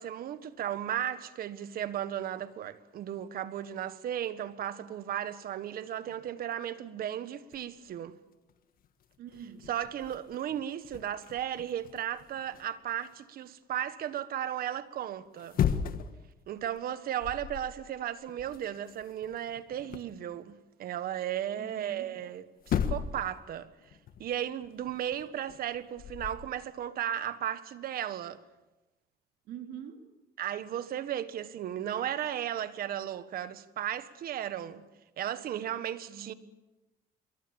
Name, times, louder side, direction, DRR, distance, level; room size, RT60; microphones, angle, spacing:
voice 1, 0.0-8.2 9.7-15.6 16.5-23.7 24.2-28.4 30.4-34.8 35.2-36.3, right 10 dB, 60° right, 1.5 m, -35 dB
sound 1, 7.5-7.9 8.5-8.6 8.8-13.1 15.3-16.2 16.6-16.8 17.2-17.7 18.0-20.2 22.2-22.3 22.6-23.3 23.6-26.5, left 8 dB, 60° left, 1.6 m, -36 dB
voice 2, 9.2-9.7 21.5-22.2 29.4-30.1 36.1-36.4, right 8 dB, 75° right, 3.3 m, -45 dB
27.0 x 23.0 x 7.3 m
cardioid pair, 110°, 17 cm